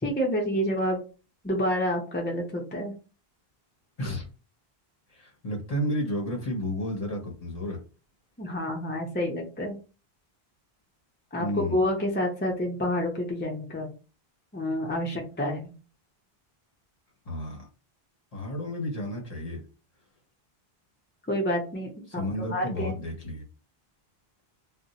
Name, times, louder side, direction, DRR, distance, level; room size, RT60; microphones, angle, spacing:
voice 1, 0.0-1.0 1.4-2.9 8.4-9.8 11.3-13.9 14.5-15.7 21.3-22.2 22.5-22.9, equal, 15° left, -1 dB, 0.5 m, -28 dB
voice 2, 5.1-7.8 11.4-11.8 17.3-17.7 18.3-19.6 22.1-23.4, left 1 dB, 40° left, -2 dB, 1.1 m, -32 dB
2.6 x 2.1 x 4.0 m, 0.34 s
omnidirectional pair, 1.0 m